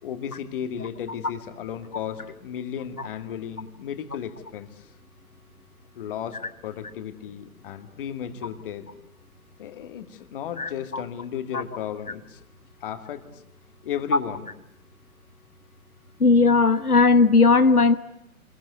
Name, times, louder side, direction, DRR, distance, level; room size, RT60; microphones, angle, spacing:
voice 1, 0.0-4.9 5.9-8.9 9.6-12.4 12.8-13.4 13.8-14.5, left 9 dB, 35° left, 8 dB, 2.2 m, -34 dB
voice 2, 10.6-11.0 11.5-11.6 16.2-18.0, left 4 dB, 90° left, 11 dB, 1.3 m, -17 dB
28.0 x 22.5 x 9.5 m, 0.81 s
figure-of-eight pair, 125°, 43 cm